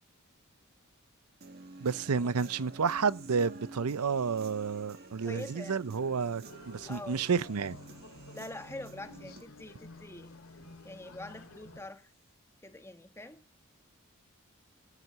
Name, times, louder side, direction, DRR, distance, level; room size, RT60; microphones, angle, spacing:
Human voice / Guitar, 1.4-9.4, right 2 dB, 45° right, 1.7 m, -50 dB
voice 1, 1.8-7.8, right 5 dB, 90° right, 0.6 m, -30 dB
voice 2, 5.2-5.8 6.8-7.2 8.3-10.3 10.8-12.1 12.6-13.4, left 1 dB, 10° left, 1.3 m, -44 dB
sound 1, 6.4-11.8, left 2 dB, 65° left, 2.6 m, -51 dB
14.5 x 9.6 x 7.2 m
head